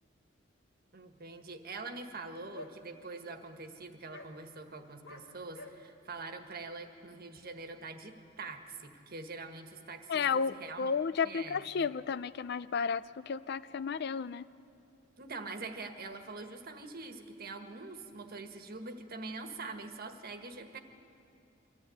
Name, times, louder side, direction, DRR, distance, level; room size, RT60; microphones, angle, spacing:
voice 1, 0.9-10.9 11.2-11.9 15.2-20.8, right 3 dB, 50° right, 6 dB, 1.5 m, -44 dB
sound 1, 2.5-2.7 3.2-3.3 3.6-3.7 4.1-4.3 5.0-5.2 5.5-5.7, left 1 dB, 80° left, 2.5 m, -48 dB
voice 2, 10.1-14.4, left 6 dB, 55° left, 16 dB, 0.4 m, -32 dB
24.5 x 14.5 x 9.4 m, 2.8 s
head